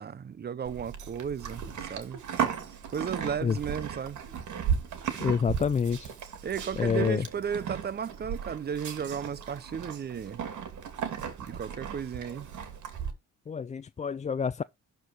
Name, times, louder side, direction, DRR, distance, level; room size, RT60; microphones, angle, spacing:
voice 1, 0.0-2.2 2.9-4.2 6.4-10.4 11.4-12.5, right 7 dB, 35° right, 0.7 m, -34 dB
Livestock farm animals working animals, 0.6-13.1, right 7 dB, 75° right, 2.6 m, -36 dB
voice 2, 5.2-6.1 6.8-7.2 13.5-14.6, left 6 dB, 25° left, 0.4 m, -27 dB
12.0 x 4.6 x 5.1 m
cardioid pair, 90°, 30 cm